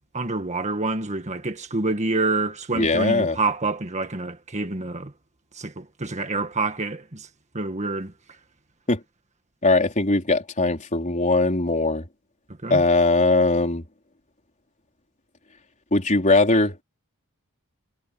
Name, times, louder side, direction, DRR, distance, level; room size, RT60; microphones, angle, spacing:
voice 1, 0.1-5.1 5.5-7.3 7.5-8.1 12.6-12.8, right 3 dB, 30° right, 1.6 m, -27 dB
voice 2, 2.7-3.4 8.9-9.0 9.6-12.0 12.7-13.8 15.9-16.8, left 2 dB, 35° left, 4.3 m, -20 dB
head